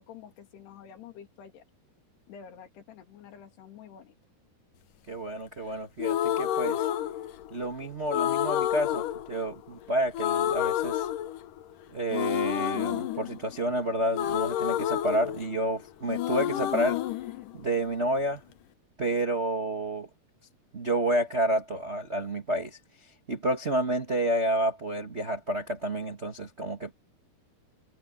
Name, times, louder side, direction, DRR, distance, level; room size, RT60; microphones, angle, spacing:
voice 1, 0.0-1.6 2.3-4.2, left 8 dB, 85° left, 4.7 m, -48 dB
voice 2, 5.1-6.9 7.5-11.1 11.9-17.0 17.5-18.4 19.0-20.1 20.7-26.9, right 1 dB, 75° right, 0.6 m, -30 dB
sound 1, 6.0-7.7 8.1-9.9 10.1-11.7 12.1-15.8 16.1-18.1, left 11 dB, 70° left, 2.2 m, -29 dB
omnidirectional pair, 4.6 m